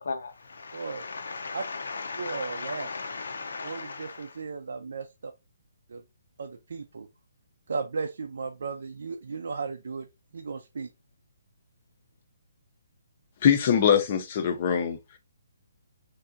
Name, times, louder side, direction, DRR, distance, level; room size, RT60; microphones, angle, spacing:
voice 1, 0.0-4.3, left 4 dB, 80° left, 0.7 m, -37 dB
voice 2, 0.7-1.0 1.5-1.6 2.2-2.9 3.6-5.3 5.9-6.0 6.4-7.1 7.7-10.1 10.3-10.9, right 4 dB, 70° right, 0.4 m, -35 dB
voice 3, 13.4-15.0, left 8 dB, 35° left, 0.5 m, -22 dB
3.3 x 2.6 x 2.5 m
hypercardioid pair, 170°, 0 cm